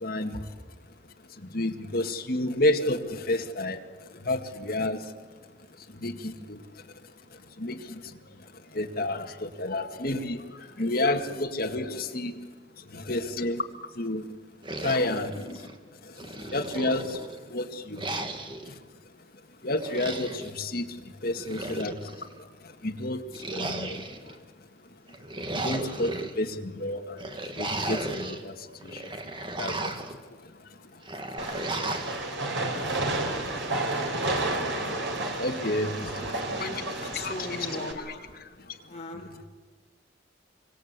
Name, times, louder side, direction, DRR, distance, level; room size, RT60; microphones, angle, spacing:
voice 1, 0.0-0.4 1.5-3.8 4.3-5.0 6.0-6.6 7.6-8.0 8.7-10.4 10.8-12.3 12.9-13.6 14.0-14.2 14.8-15.6 16.5-17.2 17.5-18.1 19.6-20.9 21.2-21.9 22.8-23.2 23.5-24.0 25.5-27.2 27.6-28.5 28.8-29.0 29.6-29.9 35.4-36.7 37.2-37.7 38.0-38.2 39.2-39.3, left 1 dB, 55° left, 3 dB, 2.1 m, -30 dB
sound 1, 14.6-15.8 16.2-17.4 18.0-18.7 19.7-20.5 21.3-22.3 23.3-24.3 25.1-26.3 27.2-28.4 28.8-30.2 31.0-32.2, right 2 dB, 25° right, 1.9 m, -35 dB
Train, 31.4-37.9, right 2 dB, 90° right, 4.2 m, -31 dB
voice 2, 36.6-38.0 38.9-39.5, left 2 dB, 35° left, 2 dB, 3.8 m, -38 dB
26.5 x 24.5 x 8.3 m, 1.4 s
head